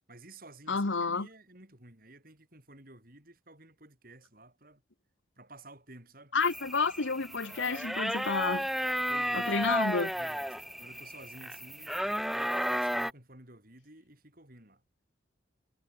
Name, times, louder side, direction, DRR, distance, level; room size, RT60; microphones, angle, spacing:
voice 1, 0.1-4.8 5.4-6.3 9.1-9.8 10.1-14.8, right 2 dB, 50° right, 7.0 m, -53 dB
voice 2, 0.7-1.3 6.3-8.7 9.3-10.1, left 4 dB, 85° left, 1.4 m, -30 dB
sound 1, 6.4-13.1, equal, ahead, 2.3 m, -33 dB
head